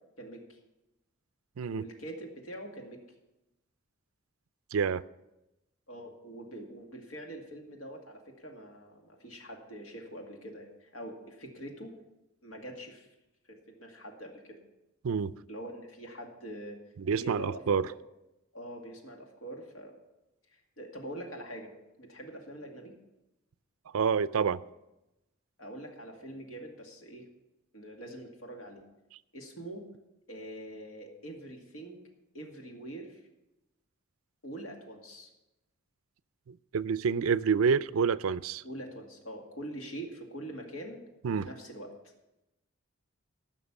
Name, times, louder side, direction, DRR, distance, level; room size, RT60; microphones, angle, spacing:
voice 1, 0.2-0.6 1.7-3.0 5.9-11.9 12.4-13.1 13.5-14.6 15.5-16.8 17.2-17.9 18.5-19.9 20.5-21.7 22.0-22.9 25.6-27.2 27.7-28.8 29.3-29.8 30.3-32.0 32.3-33.2 34.4-35.3 38.6-41.0 41.4-41.9, right 1 dB, 75° left, 2.3 m, -44 dB
voice 2, 4.7-5.0 15.0-15.3 17.0-17.9 23.9-24.6 36.5-38.6 41.2-41.5, right 6 dB, 85° right, 0.4 m, -28 dB
15.0 x 6.0 x 7.2 m
head